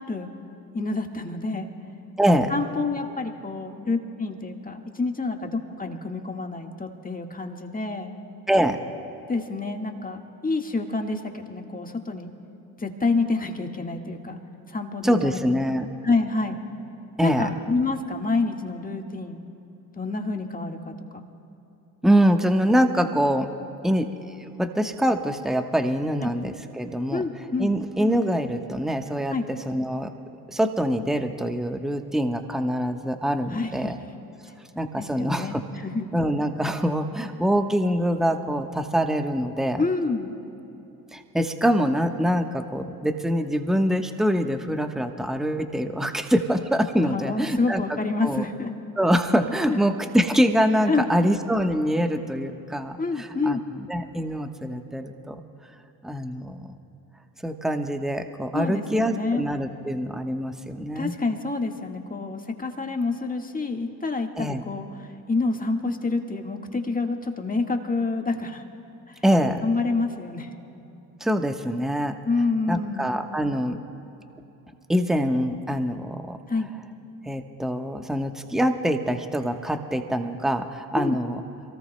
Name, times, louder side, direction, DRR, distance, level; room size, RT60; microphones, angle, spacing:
voice 1, 0.7-1.7 2.5-8.1 9.3-12.3 12.8-14.4 14.7-15.4 16.0-16.6 17.2-19.4 20.0-21.2 26.2-26.3 27.1-27.7 29.3-29.5 33.5-33.9 35.0-36.1 39.8-40.3 47.0-48.7 49.7-49.8 50.9-51.1 53.0-53.6 58.5-59.4 60.9-64.9 65.3-68.6 69.1-69.2 69.6-70.5 72.2-73.1 76.5-76.7 80.9-81.2, left 3 dB, 20° left, 4 dB, 1.6 m, -28 dB
voice 2, 2.2-2.5 8.5-8.8 15.0-15.9 17.2-17.5 22.0-23.5 23.8-24.1 24.4-27.2 27.6-30.1 30.5-34.0 34.8-35.6 36.1-39.9 41.1-48.4 49.0-55.4 56.0-56.8 57.4-61.1 64.4-64.6 69.2-69.6 71.2-72.2 72.7-73.8 74.9-76.4 77.3-81.4, equal, ahead, 6 dB, 1.1 m, -24 dB
27.0 x 18.5 x 2.2 m, 3.0 s
hypercardioid pair, 55°, 45 cm